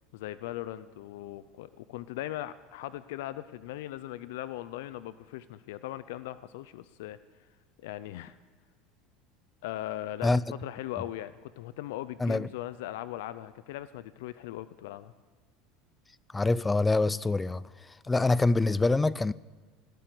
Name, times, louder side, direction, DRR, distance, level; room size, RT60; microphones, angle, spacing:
voice 1, 0.1-7.2 7.8-8.4 9.6-15.1, left 14 dB, 85° left, 0.5 m, -39 dB
voice 2, 16.3-17.6 18.1-19.3, left 3 dB, 10° left, 0.3 m, -25 dB
18.5 x 6.8 x 9.5 m
supercardioid pair, 135°, 0 cm